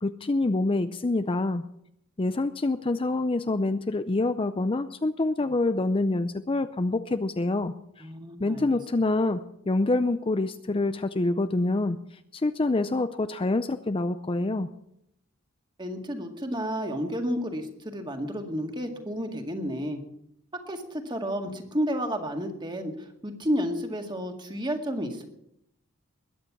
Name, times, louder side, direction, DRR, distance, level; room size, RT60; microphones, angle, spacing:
voice 1, 0.0-1.6 2.2-8.1 8.4-12.0 12.3-14.7, left 2 dB, 25° left, 10 dB, 0.5 m, -26 dB
voice 2, 8.0-8.7 15.8-20.0 20.7-25.2, equal, 20° right, 4 dB, 2.0 m, -31 dB
21.0 x 9.3 x 6.0 m, 0.77 s
head